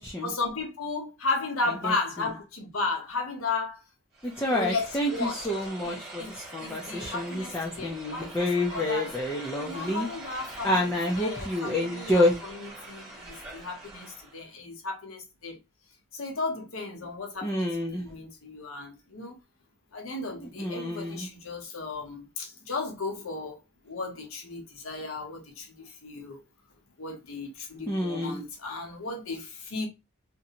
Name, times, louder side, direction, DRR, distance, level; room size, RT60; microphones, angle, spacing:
voice 1, 0.2-3.8 4.5-5.5 5.8-9.2 9.6-15.6 16.1-19.4 19.9-26.4 27.0-29.9, left 3 dB, 75° left, 0.9 m, -35 dB
sound 1, 4.1-14.5, right 2 dB, 15° right, 1.3 m, -44 dB
voice 2, 4.2-10.1 10.6-12.4 17.4-18.0 20.4-21.3 27.9-28.4, left 1 dB, 10° left, 0.5 m, -28 dB
2.6 x 2.2 x 2.8 m
head